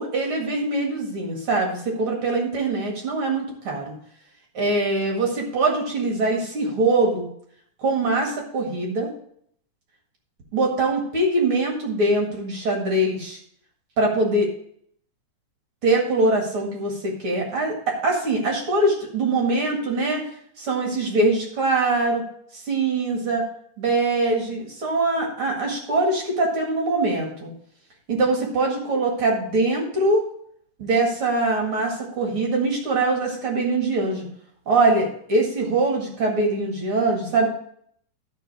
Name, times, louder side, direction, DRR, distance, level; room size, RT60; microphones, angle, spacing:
voice 1, 0.0-3.9 4.5-7.3 7.8-9.1 10.5-13.4 14.0-14.5 15.8-20.2 20.6-22.2 22.5-23.4 23.8-27.5 28.1-30.2 30.8-34.3 34.7-37.5, right 2 dB, 45° right, 0 dB, 2.5 m, -23 dB
13.0 x 5.0 x 4.8 m, 0.66 s
omnidirectional pair, 3.6 m